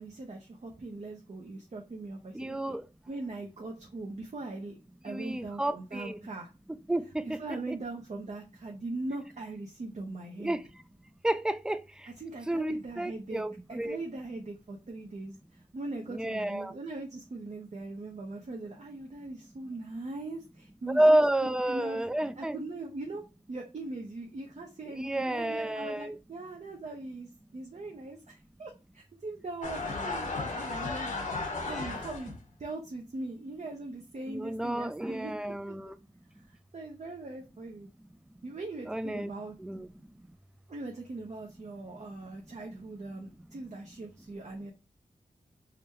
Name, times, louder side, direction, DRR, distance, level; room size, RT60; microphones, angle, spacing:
voice 1, 0.0-2.8 3.1-4.8 5.0-6.5 7.2-10.6 12.2-13.4 13.7-22.0 22.4-23.2 23.5-35.8 36.4-37.9 38.4-39.5 40.7-44.7, right 2 dB, 55° right, 0.7 m, -40 dB
voice 2, 2.3-2.8 5.1-6.2 6.9-7.4 7.7-7.8 10.4-10.6 11.2-11.8 12.5-14.0 16.1-16.7 20.9-22.6 25.0-26.2 34.3-35.9 38.9-39.3 39.6-39.9, right 1 dB, 5° right, 0.3 m, -30 dB
sound 1, 29.6-32.4, left 3 dB, 60° left, 1.0 m, -35 dB
5.0 x 2.2 x 2.9 m
cardioid pair, 45°, 14 cm